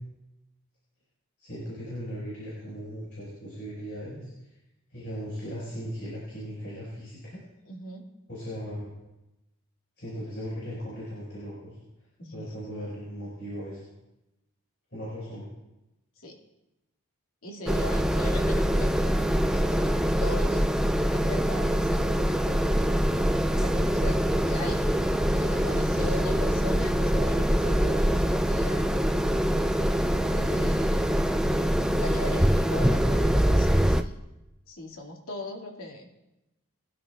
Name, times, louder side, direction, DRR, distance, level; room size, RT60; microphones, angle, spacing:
voice 1, 1.4-4.6 4.9-7.4 8.3-8.9 10.0-11.8 12.3-13.9 14.9-15.5, equal, 50° left, -7 dB, 5.3 m, -38 dB
voice 2, 7.7-8.0 12.2-12.5 16.2-16.4 17.4-20.6 21.1-22.9 23.6-24.9 25.3-28.9 30.1-31.2 32.0-34.1 34.7-36.1, left 2 dB, 80° left, -1 dB, 2.3 m, -39 dB
sound 1, 17.7-34.0, equal, 5° right, 0.3 m, -24 dB
sound 2, 25.5-26.4, right 2 dB, 70° right, 1.0 m, -42 dB
22.5 x 13.0 x 2.4 m, 0.96 s
head